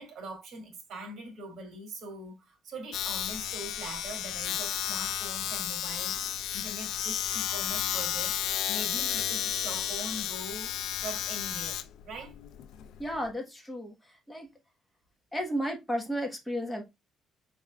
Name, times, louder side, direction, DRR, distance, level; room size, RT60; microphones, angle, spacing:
voice 1, 0.0-11.8 12.0-12.3, right 2 dB, 55° right, 2.1 m, -42 dB
Domestic sounds home sounds, 2.9-13.3, left 10 dB, 75° left, 0.5 m, -33 dB
voice 2, 13.0-14.5 15.3-16.8, equal, 5° left, 1.2 m, -33 dB
4.7 x 4.3 x 2.3 m
cardioid pair, 130°, 0 cm